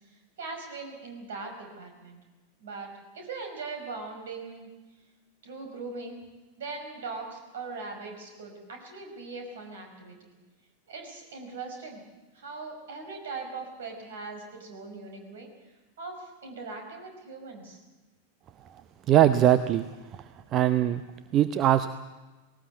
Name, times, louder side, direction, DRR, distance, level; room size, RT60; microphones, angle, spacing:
voice 1, 0.1-2.2 2.6-4.7 5.4-6.2 6.6-10.3 10.9-12.0 12.3-15.5 16.0-17.8, right 4 dB, 60° right, 4 dB, 5.5 m, -40 dB
voice 2, 19.1-19.9 20.1-21.1 21.3-21.9, right 11 dB, 30° right, 12 dB, 0.7 m, -22 dB
19.0 x 18.5 x 8.2 m, 1.2 s
figure-of-eight pair, 90°, 0 cm